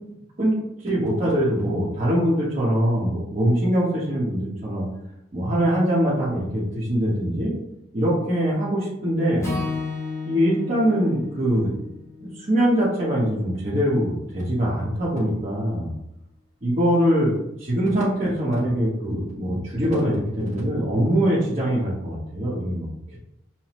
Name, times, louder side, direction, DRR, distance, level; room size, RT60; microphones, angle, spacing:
voice 1, 0.8-4.9 5.3-7.5 7.9-9.5 10.3-11.7 12.2-15.9 16.6-17.3 17.6-23.2, equal, 40° right, -9 dB, 0.9 m, -23 dB
Acoustic guitar / Strum, 9.4-13.7, left 3 dB, 15° left, 0.8 m, -33 dB
5.7 x 2.1 x 3.0 m, 0.83 s
head